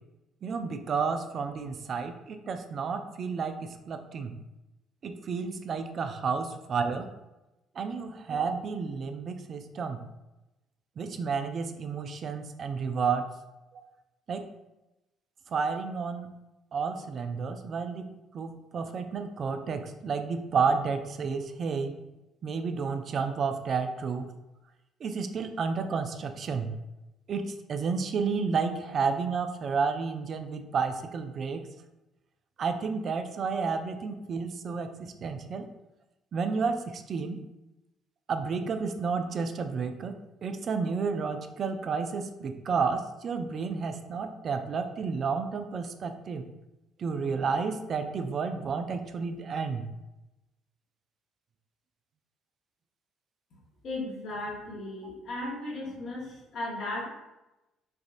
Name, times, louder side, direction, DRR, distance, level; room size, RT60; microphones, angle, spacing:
voice 1, 0.4-4.3 5.0-7.1 7.8-10.0 11.0-13.2 14.3-14.5 15.5-16.3 16.7-18.1 18.3-22.0 22.4-24.3 25.0-26.7 27.3-31.6 32.6-35.7 36.3-37.4 38.3-46.5 47.0-49.9 55.0-55.1, right 5 dB, 50° right, 7 dB, 0.3 m, -31 dB
voice 2, 53.8-57.1, left 2 dB, 60° left, -6 dB, 0.9 m, -36 dB
3.4 x 2.4 x 2.4 m, 0.97 s
hypercardioid pair, 55°, 0 cm